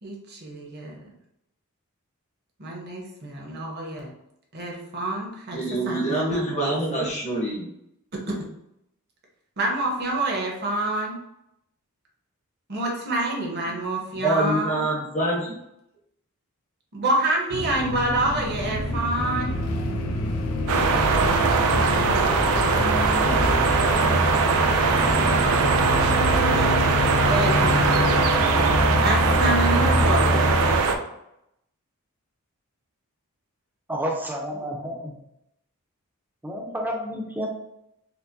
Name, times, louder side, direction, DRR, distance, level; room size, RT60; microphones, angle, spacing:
voice 1, 0.0-1.1 2.6-4.1 4.5-7.1 8.3-8.4 9.6-11.2 12.7-14.8 16.9-19.5 22.9-28.5 29.0-30.8, right 2 dB, 45° right, -1 dB, 0.8 m, -28 dB
voice 2, 5.5-7.7 13.7-13.8 14.1-15.6, right 1 dB, 30° left, -4 dB, 0.8 m, -26 dB
sound 1, 17.5-30.8, left 1 dB, 75° left, 0.5 m, -26 dB
sound 2, 20.7-31.0, right 4 dB, 65° right, 0.4 m, -21 dB
voice 3, 33.9-35.1 36.4-37.5, equal, 10° right, -1 dB, 0.5 m, -30 dB
4.5 x 2.1 x 2.6 m, 0.80 s
head